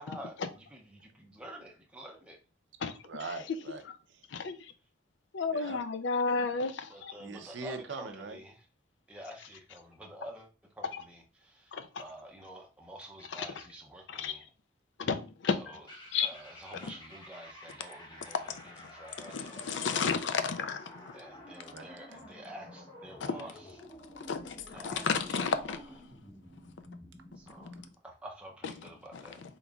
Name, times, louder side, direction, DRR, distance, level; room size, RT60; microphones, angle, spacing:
voice 1, 0.0-2.4 6.9-8.7 9.1-14.5 15.5-15.8 16.2-19.7 21.1-23.8 24.7-25.8 27.4-29.4, right 1 dB, 5° right, 0.5 m, -49 dB
voice 2, 3.0-4.3 5.5-5.8 7.2-8.4 21.7-21.9, right 3 dB, 90° right, 0.6 m, -42 dB
voice 3, 4.3-4.7 5.3-7.1 11.7-11.9 13.3-13.5 14.1-14.4 15.1-15.2 15.4-15.5 16.1-16.3 19.3-21.2 23.2-23.3 24.2-25.8, left 5 dB, 80° left, 0.5 m, -32 dB
sound 1, 15.9-27.9, left 1 dB, 25° left, 0.8 m, -51 dB
3.9 x 3.6 x 2.3 m
head